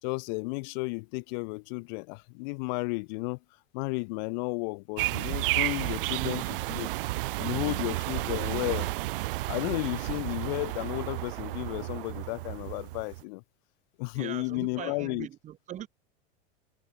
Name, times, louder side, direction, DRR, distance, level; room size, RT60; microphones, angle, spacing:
voice 1, 0.0-3.4 3.7-6.4 6.7-6.9 7.4-8.9 9.5-13.4 14.0-15.3, left 29 dB, 45° left, 2.8 m, -33 dB
sound 1, 5.0-13.2, right 19 dB, 55° right, 0.8 m, -32 dB
voice 2, 6.2-6.6 7.6-8.0 14.1-15.9, right 11 dB, 20° right, 5.2 m, -40 dB
supercardioid pair, 175°, 33 cm